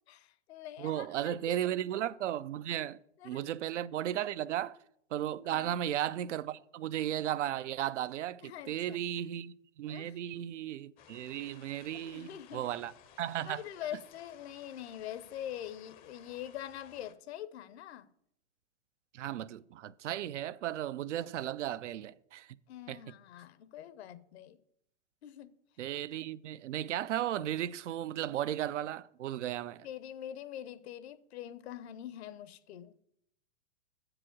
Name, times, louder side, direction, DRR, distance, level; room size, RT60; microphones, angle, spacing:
voice 1, 0.1-1.6 3.2-3.4 5.5-5.8 8.4-9.0 9.9-10.2 11.9-12.6 13.4-18.1 22.7-24.6 25.2-25.5 29.8-32.9, left 11 dB, 60° left, 0.7 m, -44 dB
voice 2, 0.8-3.0 3.2-4.8 5.1-12.9 13.2-13.6 19.1-22.6 22.9-23.0 25.8-29.9, right 12 dB, 75° right, 0.5 m, -35 dB
sound 1, 11.0-17.1, left 9 dB, 25° left, 0.5 m, -58 dB
7.7 x 4.9 x 7.3 m
hypercardioid pair, 115°, 36 cm